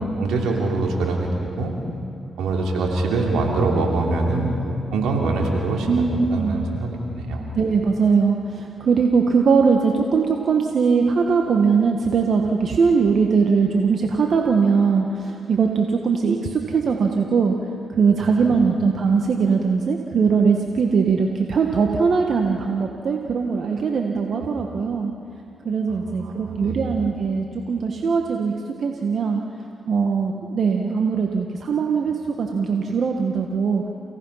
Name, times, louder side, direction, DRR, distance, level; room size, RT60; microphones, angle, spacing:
voice 1, 0.2-1.3 1.6-1.7 2.4-6.0 6.3-7.5 26.2-26.8, right 3 dB, 90° right, 0 dB, 3.0 m, -23 dB
voice 2, 5.9-6.6 7.5-17.5 18.0-25.1 25.6-28.5 28.8-29.4 29.9-33.8, right 5 dB, 65° right, 2 dB, 1.5 m, -20 dB
29.5 x 17.5 x 5.8 m, 2.8 s
supercardioid pair, 55°, 0 cm